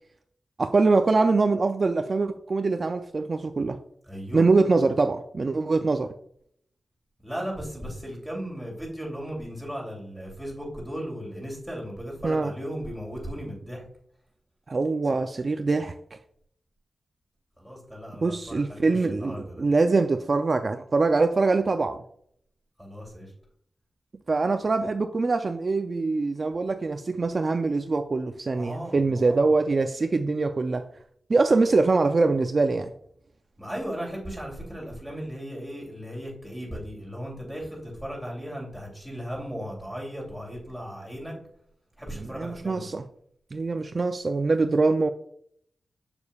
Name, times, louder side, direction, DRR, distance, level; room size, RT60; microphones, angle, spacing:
voice 1, 0.6-3.8 4.3-6.1 12.2-12.5 14.7-16.2 18.2-22.0 24.3-30.9 31.3-32.9 42.2-43.0 43.5-45.1, right 3 dB, 45° right, 0.4 m, -23 dB
voice 2, 4.0-4.5 7.2-13.8 15.0-15.1 17.6-19.6 22.8-23.3 28.5-29.5 33.6-41.3 42.0-42.9, equal, ahead, 2.8 m, -36 dB
6.9 x 6.8 x 2.3 m
wide cardioid pair, 120°, 0 cm